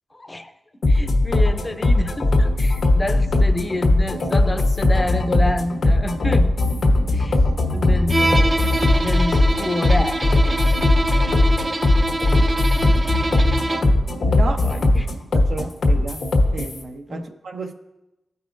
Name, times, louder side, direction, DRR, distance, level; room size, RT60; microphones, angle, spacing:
voice 1, 0.1-0.5 0.9-6.5 7.1-7.4 7.7-8.6 9.0-10.2 12.4-12.6 14.4-15.1 15.6-15.7 17.1-17.3, left 1 dB, 30° left, 0.6 m, -28 dB
sound 1, 0.8-16.8, left 2 dB, 80° left, 1.3 m, -18 dB
Bowed string instrument, 8.1-14.0, right 2 dB, 30° right, 0.4 m, -25 dB
voice 2, 14.2-14.6 15.3-17.7, right 3 dB, 75° right, 0.7 m, -32 dB
14.5 x 5.4 x 2.5 m
cardioid pair, 45°, 0 cm